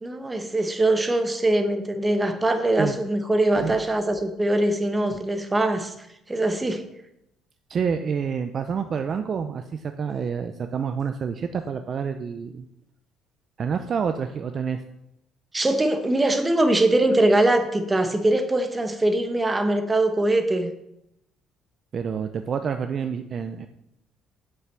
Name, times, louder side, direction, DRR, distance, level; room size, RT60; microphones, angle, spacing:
voice 1, 0.0-5.9 6.3-6.8 15.5-20.7, right 1 dB, 15° right, 7 dB, 1.0 m, -22 dB
voice 2, 7.7-12.7 13.6-14.8 21.9-23.7, right 6 dB, 40° right, 8 dB, 0.5 m, -28 dB
7.9 x 5.8 x 7.4 m, 0.82 s
cardioid pair, 145°, 0 cm